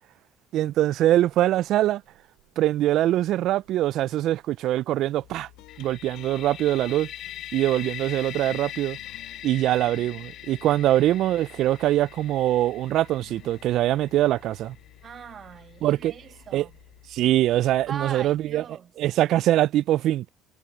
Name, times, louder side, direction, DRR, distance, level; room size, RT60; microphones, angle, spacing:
voice 1, 0.5-2.0 2.6-5.5 5.8-7.1 7.5-9.0 9.4-14.8 15.8-16.1 16.5-16.7 17.1-18.6 19.0-20.3, right 14 dB, 70° right, 0.4 m, -23 dB
sound 1, 0.7-17.1, right 32 dB, 90° right, 6.0 m, -65 dB
sound 2, 5.2-18.8, left 17 dB, 80° left, 1.2 m, -52 dB
sound 3, 5.7-15.4, left 12 dB, 65° left, 0.7 m, -41 dB
voice 2, 15.0-16.8 17.9-18.9, right 7 dB, 45° right, 1.7 m, -39 dB
supercardioid pair, 75°, 0 cm